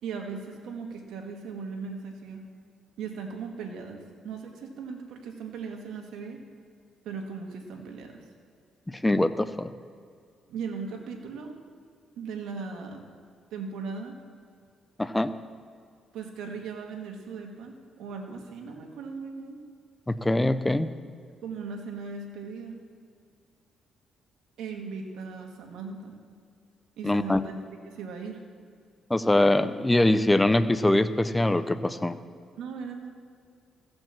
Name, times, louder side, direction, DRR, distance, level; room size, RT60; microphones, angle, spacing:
voice 1, 0.0-2.4 3.0-6.4 7.0-8.2 10.5-11.6 12.2-13.0 13.5-14.1 16.1-19.6 21.4-22.8 24.6-26.2 27.0-27.5 27.8-28.4 32.6-33.1, right 5 dB, 85° right, 3 dB, 1.6 m, -38 dB
voice 2, 9.0-9.7 15.0-15.3 20.1-20.9 27.0-27.4 29.1-32.2, left 1 dB, 10° left, 12 dB, 0.6 m, -23 dB
15.0 x 5.2 x 7.4 m, 2.3 s
cardioid pair, 90°, 0 cm